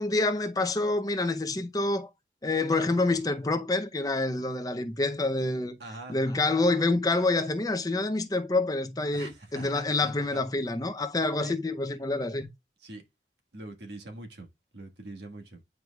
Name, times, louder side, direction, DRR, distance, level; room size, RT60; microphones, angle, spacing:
voice 1, 0.0-2.1 2.4-5.8 6.1-12.5, left 2 dB, 20° left, 0.6 m, -27 dB
voice 2, 5.8-6.2 9.1-10.4 11.4-11.5 12.8-13.0 13.5-14.5 14.7-15.6, right 2 dB, 75° right, 1.6 m, -43 dB
9.5 x 4.6 x 2.3 m
head